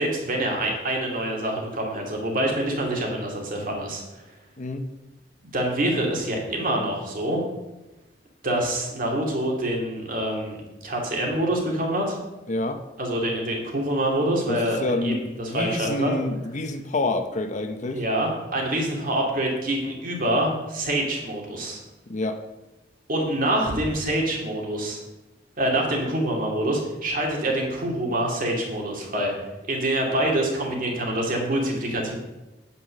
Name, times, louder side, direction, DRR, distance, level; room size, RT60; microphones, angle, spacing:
voice 1, 0.0-4.0 5.5-7.4 8.4-10.6 10.8-12.2 13.0-16.1 17.9-21.8 23.1-25.0 25.6-29.3 29.7-32.2, right 1 dB, 50° right, 0 dB, 2.5 m, -26 dB
voice 2, 12.5-12.8 14.5-18.0 22.1-22.4, left 2 dB, 40° left, 7 dB, 0.8 m, -28 dB
9.3 x 6.0 x 6.4 m, 1.0 s
head